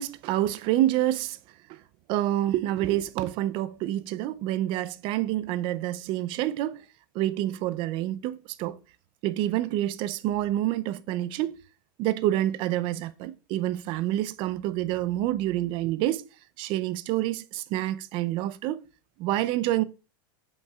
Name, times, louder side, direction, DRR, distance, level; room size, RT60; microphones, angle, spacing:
voice 1, 0.0-1.4 1.7-1.8 2.1-6.8 7.1-8.8 9.2-11.6 12.0-16.2 16.6-18.8 19.2-19.8, right 14 dB, 50° right, 0.5 m, -27 dB
8.0 x 5.4 x 2.4 m
supercardioid pair, 125°, 12 cm